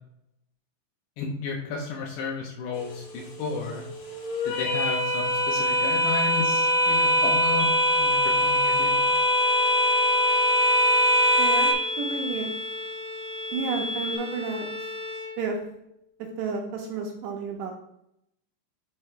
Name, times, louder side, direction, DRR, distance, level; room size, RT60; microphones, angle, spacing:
voice 1, 1.2-3.8 4.5-7.7 8.0-9.0, left 4 dB, 80° left, 0 dB, 2.5 m, -33 dB
sound 1, 2.8-11.7, equal, 60° left, 3.3 m, -23 dB
sound 2, 7.6-14.2, left 2 dB, 55° right, 1.4 m, -35 dB
Bowed string instrument, 9.1-15.9, left 2 dB, 20° right, 1.1 m, -38 dB
voice 2, 11.4-12.5 13.5-14.7 15.4-15.6 16.4-17.7, right 4 dB, 75° right, 1 dB, 2.8 m, -31 dB
11.5 x 6.4 x 2.2 m, 0.77 s
omnidirectional pair, 5.6 m